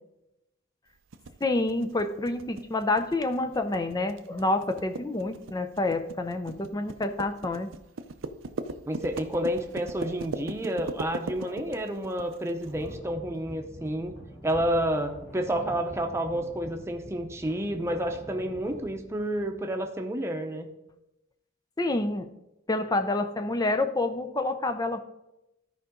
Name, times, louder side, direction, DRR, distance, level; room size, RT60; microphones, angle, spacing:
sound 1, 1.1-12.7, right 3 dB, 75° right, 0.6 m, -39 dB
voice 1, 1.4-7.7 11.4-11.8 21.8-22.3 22.7-25.0, left 2 dB, 20° left, 8 dB, 0.5 m, -28 dB
voice 2, 8.8-14.1 14.4-20.7, right 1 dB, 15° right, 4 dB, 0.8 m, -30 dB
sound 2, 12.6-20.0, equal, 35° left, 2.9 m, -46 dB
13.0 x 4.9 x 3.7 m, 0.90 s
head